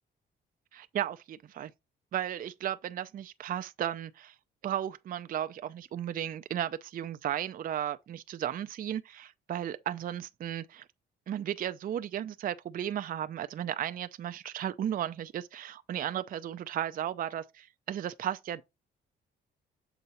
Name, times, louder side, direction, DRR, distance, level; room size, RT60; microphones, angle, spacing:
voice 1, 0.7-1.7 2.1-4.4 4.6-10.8 11.3-18.6, right 10 dB, 45° right, 0.4 m, -35 dB
6.9 x 3.7 x 4.2 m
cardioid pair, 90°, 20 cm